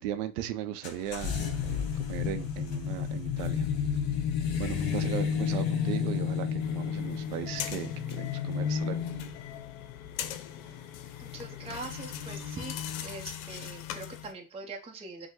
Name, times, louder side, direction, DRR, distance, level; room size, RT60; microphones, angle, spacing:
voice 1, 0.0-3.7 4.5-9.1, right 10 dB, 80° right, 10 dB, 0.7 m, -37 dB
sound 1, 0.8-13.0, left 7 dB, 55° left, 1.3 m, -32 dB
sound 2, 6.6-14.3, left 10 dB, 75° left, 0.7 m, -41 dB
voice 2, 11.2-12.8 13.0-15.3, right 3 dB, 15° right, 1 dB, 0.8 m, -42 dB
5.2 x 2.2 x 3.7 m, 0.32 s
supercardioid pair, 110°, 44 cm